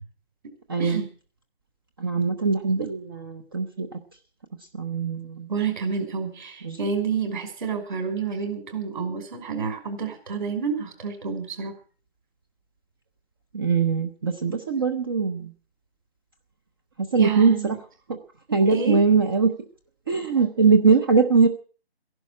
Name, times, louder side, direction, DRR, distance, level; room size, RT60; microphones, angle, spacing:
voice 1, 0.7-1.0 2.0-4.0 4.7-5.5 6.6-6.8 13.5-15.5 17.1-17.8 18.1-18.2 18.5-19.5 20.1-21.5, right 5 dB, 20° right, 8 dB, 0.8 m, -21 dB
voice 2, 5.5-11.7 17.1-17.8 18.7-19.0, right 5 dB, 45° right, 5 dB, 5.3 m, -29 dB
15.0 x 11.0 x 7.4 m, 0.40 s
figure-of-eight pair, 155°, 33 cm